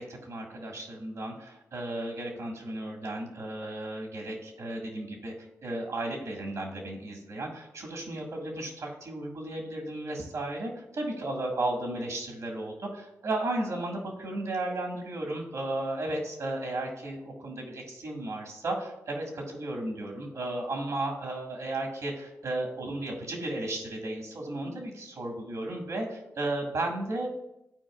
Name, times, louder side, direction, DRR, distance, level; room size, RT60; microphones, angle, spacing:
voice 1, 0.0-5.3 5.6-27.3, right 2 dB, 70° right, 1 dB, 1.7 m, -34 dB
13.0 x 4.5 x 2.4 m, 0.86 s
cardioid pair, 55°, 6 cm